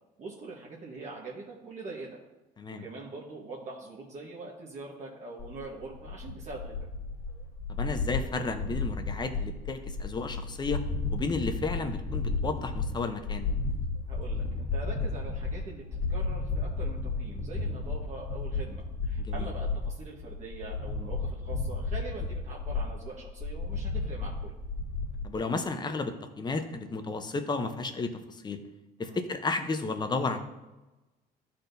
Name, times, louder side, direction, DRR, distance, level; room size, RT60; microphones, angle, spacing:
voice 1, 0.2-2.2 2.7-6.9 14.1-24.5 29.0-29.2, right 3 dB, 45° right, -3 dB, 1.2 m, -43 dB
sound 1, 5.4-25.2, left 3 dB, 45° left, 1.7 m, -33 dB
voice 2, 7.7-10.8 11.1-13.5 19.2-19.5 25.2-28.6 29.0-30.4, left 3 dB, 25° left, 7 dB, 0.7 m, -33 dB
12.0 x 4.3 x 2.6 m, 1.1 s
cardioid pair, 110°, 17 cm